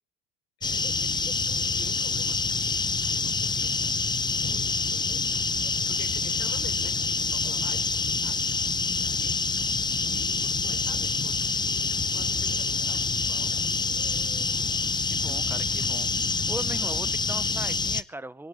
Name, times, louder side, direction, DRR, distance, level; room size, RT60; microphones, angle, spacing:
voice 1, 0.6-5.1 5.9-9.4 10.0-13.5, left 8 dB, 45° left, 5.0 m, -48 dB
sound 1, 0.6-18.0, left 4 dB, 15° left, 0.8 m, -27 dB
voice 2, 15.1-16.1 16.5-18.5, right 2 dB, 5° right, 1.1 m, -39 dB
26.5 x 12.0 x 3.7 m
supercardioid pair, 105°, 33 cm